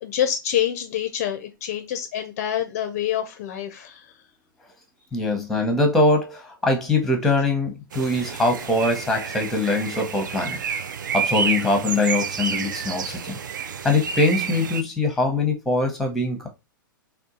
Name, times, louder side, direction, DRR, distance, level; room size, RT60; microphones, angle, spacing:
voice 1, 0.0-4.1, left 10 dB, 45° left, 0.4 m, -26 dB
voice 2, 5.1-10.6 11.1-13.4 13.8-16.5, left 2 dB, 5° left, 0.8 m, -22 dB
sound 1, 7.9-14.8, right 6 dB, 60° right, 0.4 m, -29 dB
3.6 x 2.3 x 2.6 m
figure-of-eight pair, 105°, 11 cm